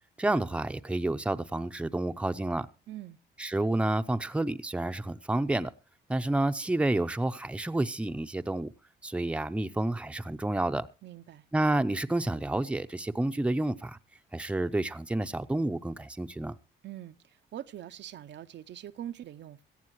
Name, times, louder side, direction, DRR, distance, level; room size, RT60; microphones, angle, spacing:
voice 1, 0.2-2.7 3.4-5.7 6.1-8.7 9.0-10.9 11.5-14.0 14.3-16.5, right 1 dB, 5° right, 0.6 m, -29 dB
voice 2, 2.9-3.2 11.0-11.4 16.8-19.6, right 11 dB, 65° right, 0.6 m, -43 dB
17.5 x 14.5 x 3.0 m
cardioid pair, 90°, 20 cm